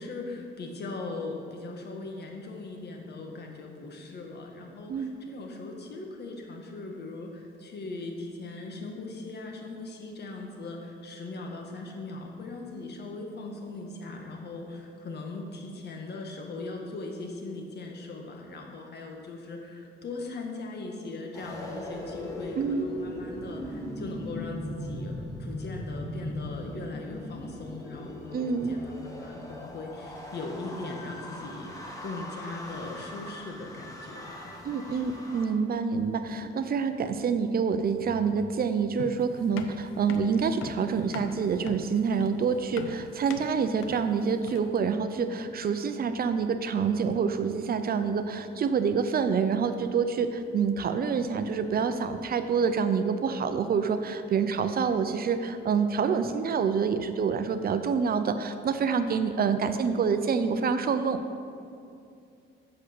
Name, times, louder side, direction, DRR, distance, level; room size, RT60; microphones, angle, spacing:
voice 1, 0.0-31.7 32.0-34.6 34.9-35.0 51.0-51.4, left 3 dB, 55° left, 2 dB, 1.6 m, -39 dB
sound 1, 21.3-35.5, left 1 dB, 15° left, 1.8 m, -39 dB
voice 2, 22.6-23.0 28.3-28.8 34.6-61.2, right 6 dB, 50° right, 9 dB, 0.6 m, -27 dB
sound 2, 39.0-44.8, left 6 dB, 90° left, 0.7 m, -41 dB
8.2 x 6.6 x 6.6 m, 2.5 s
cardioid pair, 90°, 20 cm